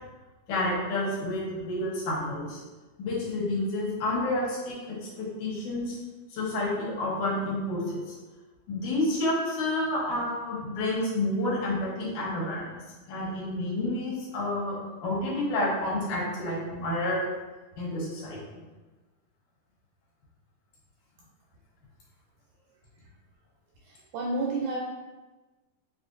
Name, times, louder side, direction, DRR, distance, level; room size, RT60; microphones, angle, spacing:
voice 1, 0.5-2.6 3.0-6.0 6.3-8.0 8.7-12.7 13.1-17.2 17.8-18.4, left 1 dB, 70° left, -6 dB, 2.4 m, -29 dB
voice 2, 23.8-24.8, right 2 dB, 80° right, -3 dB, 1.7 m, -30 dB
6.3 x 2.5 x 2.5 m, 1.2 s
omnidirectional pair, 3.7 m